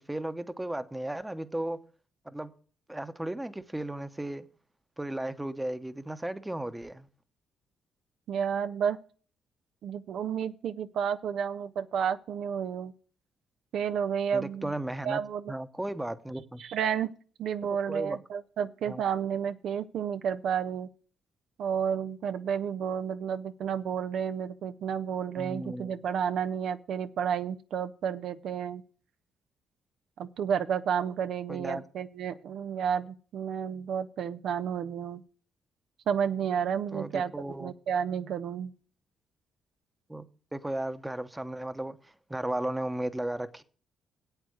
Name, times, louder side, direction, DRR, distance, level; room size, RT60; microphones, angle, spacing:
voice 1, 0.1-1.8 2.2-2.5 2.9-4.5 5.0-7.1 14.3-15.2 15.5-16.6 17.9-18.2 18.9-19.0 25.4-25.9 31.5-31.8 36.9-37.7 40.1-40.3 40.5-43.6, right 1 dB, 10° right, 0.9 m, -35 dB
voice 2, 8.3-9.0 9.8-12.9 13.7-14.7 15.0-15.5 16.6-17.1 17.4-20.9 21.6-28.8 30.2-35.2 36.1-37.3 37.6-38.7, right 8 dB, 70° right, 0.5 m, -31 dB
8.2 x 8.1 x 6.4 m
cardioid pair, 90°, 0 cm